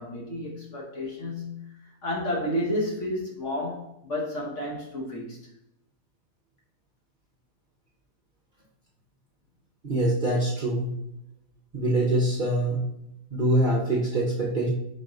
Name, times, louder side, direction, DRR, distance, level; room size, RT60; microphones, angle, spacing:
voice 1, 0.0-1.6 2.0-5.5, left 1 dB, 50° left, -2 dB, 1.1 m, -31 dB
voice 2, 9.8-10.9 11.7-12.8 13.3-14.7, right 1 dB, 45° right, -6 dB, 0.7 m, -24 dB
4.0 x 2.6 x 4.8 m, 0.84 s
omnidirectional pair, 1.8 m